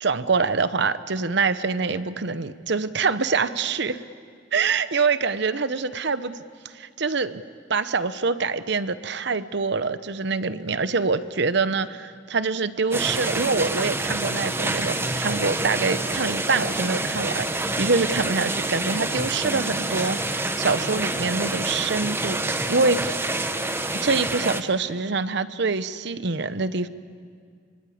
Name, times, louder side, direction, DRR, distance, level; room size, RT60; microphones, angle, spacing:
voice 1, 0.0-4.0 4.5-6.4 6.6-7.4 7.7-22.4 22.7-23.2 23.9-26.9, right 4 dB, 65° right, 13 dB, 0.9 m, -25 dB
sound 1, 12.9-24.6, right 2 dB, 15° right, 1.0 m, -27 dB
26.0 x 24.5 x 8.6 m, 2.1 s
head